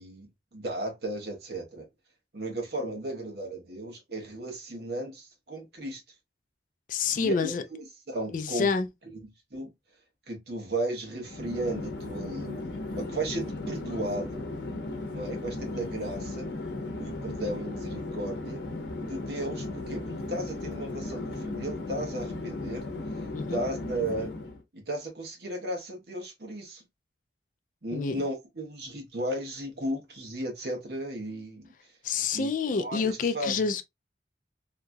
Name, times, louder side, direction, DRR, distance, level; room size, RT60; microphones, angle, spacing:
voice 1, 0.0-1.9 2.3-6.0 7.2-8.7 9.5-9.7 10.3-12.6 13.0-14.5 15.1-16.5 17.0-18.6 19.0-22.8 23.5-24.3 24.7-26.8 27.8-31.7 32.3-33.6, right 1 dB, 60° right, 1.1 m, -35 dB
voice 2, 6.9-7.6 8.3-8.9 23.3-23.6 27.9-28.2 32.0-33.8, left 5 dB, 45° left, 0.4 m, -28 dB
Chatter / Fixed-wing aircraft airplane, 11.2-24.6, left 2 dB, 85° left, 0.7 m, -36 dB
2.8 x 2.4 x 2.6 m
head